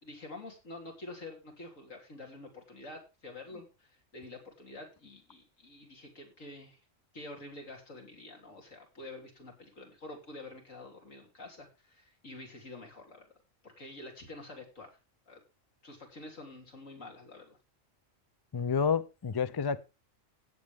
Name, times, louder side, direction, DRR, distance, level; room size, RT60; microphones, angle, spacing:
voice 1, 0.0-6.8 7.1-13.3 13.6-14.9 15.3-15.4 15.8-17.6, left 2 dB, 75° left, 3.6 m, -48 dB
voice 2, 18.5-19.8, left 6 dB, 35° left, 0.3 m, -29 dB
16.5 x 7.7 x 3.5 m
omnidirectional pair, 1.3 m